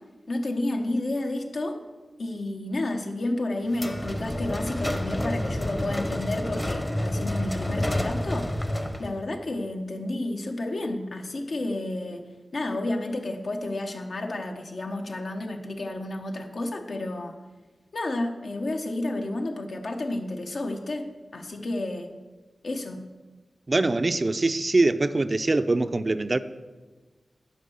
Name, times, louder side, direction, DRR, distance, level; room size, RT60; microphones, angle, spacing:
voice 1, 0.3-1.8 2.2-8.6 9.0-12.2 12.5-17.4 17.9-22.1 22.6-23.0, left 2 dB, 75° left, 3 dB, 1.0 m, -31 dB
sound 1, 3.7-9.2, left 1 dB, 20° left, 0.8 m, -29 dB
voice 2, 23.7-26.4, right 2 dB, 45° right, 11 dB, 0.5 m, -23 dB
10.0 x 4.7 x 7.0 m, 1.3 s
cardioid pair, 55°, 0 cm